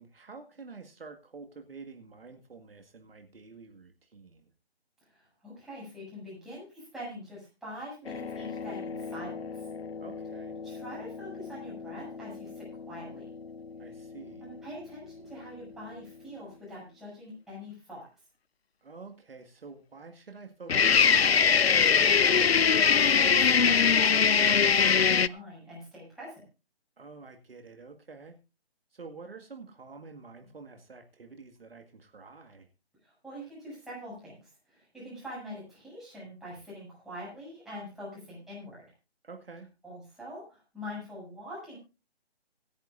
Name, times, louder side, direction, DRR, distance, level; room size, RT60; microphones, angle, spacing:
voice 1, 0.0-4.5 10.0-10.6 13.8-14.5 18.8-22.1 27.0-28.4 28.9-32.7 39.2-39.7, right 4 dB, 60° right, 5 dB, 2.1 m, -48 dB
voice 2, 5.1-9.7 10.6-13.3 14.4-18.0 22.6-26.4 33.0-38.8 39.8-41.8, equal, ahead, -7 dB, 7.4 m, -44 dB
sound 1, 8.1-13.7 20.7-25.3, left 6 dB, 70° left, 0.7 m, -24 dB
26.0 x 10.0 x 2.6 m, 0.29 s
figure-of-eight pair, 155°, 32 cm